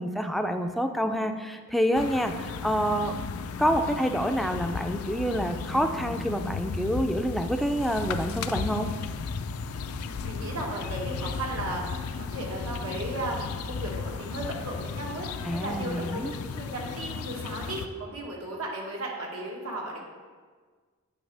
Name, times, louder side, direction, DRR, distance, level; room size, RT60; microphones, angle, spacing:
voice 1, 0.0-3.1 3.6-8.9 15.4-16.3, equal, ahead, 5 dB, 0.3 m, -27 dB
sound 1, 1.9-17.9, left 5 dB, 85° left, 0.4 m, -35 dB
voice 2, 9.8-13.4 13.6-16.2 16.5-20.0, right 1 dB, 85° right, -2 dB, 1.5 m, -35 dB
8.8 x 5.0 x 3.4 m, 1.5 s
head